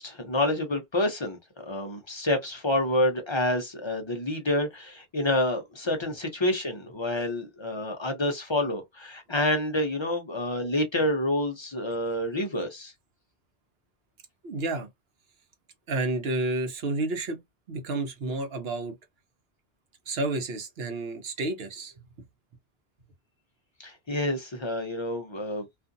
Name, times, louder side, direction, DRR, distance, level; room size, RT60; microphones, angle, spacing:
voice 1, 0.0-1.4 1.7-12.9 23.8-25.6, left 1 dB, 35° left, 0.5 m, -28 dB
voice 2, 14.4-14.9 15.9-17.4 17.7-19.0 20.1-22.0, right 2 dB, 70° right, 1.0 m, -30 dB
2.5 x 2.4 x 2.5 m
omnidirectional pair, 1.1 m